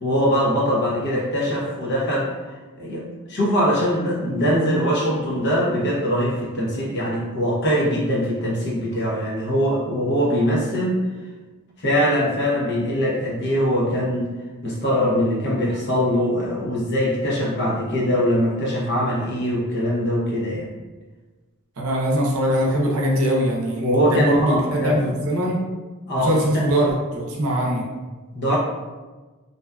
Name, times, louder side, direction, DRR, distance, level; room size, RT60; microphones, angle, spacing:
voice 1, 0.0-11.0 11.8-14.3 14.6-20.7 23.8-25.1 26.1-26.7 28.3-28.6, equal, 50° left, -5 dB, 0.7 m, -22 dB
voice 2, 21.8-24.6 24.8-25.6 26.2-27.8, equal, 75° right, -2 dB, 0.6 m, -22 dB
2.6 x 2.3 x 2.2 m, 1.3 s
head